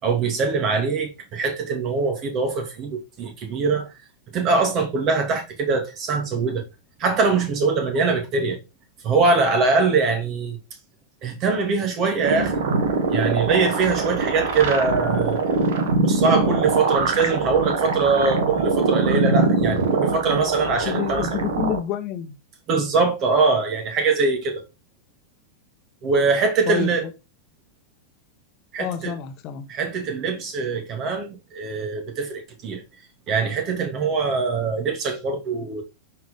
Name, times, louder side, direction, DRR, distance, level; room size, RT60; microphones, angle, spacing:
voice 1, 0.0-3.9 4.3-6.6 7.0-8.6 9.0-10.6 11.2-12.5 13.1-15.4 16.0-21.4 22.7-24.6 26.0-27.1 28.7-29.1 29.7-32.8 33.3-35.8, right 4 dB, 35° right, 2.6 m, -22 dB
sound 1, 12.2-21.8, right 4 dB, 55° right, 1.6 m, -23 dB
voice 2, 20.8-22.4 26.7-26.9 28.8-29.7, left 10 dB, 35° left, 1.4 m, -28 dB
9.1 x 4.7 x 3.8 m
figure-of-eight pair, 90°, 0 cm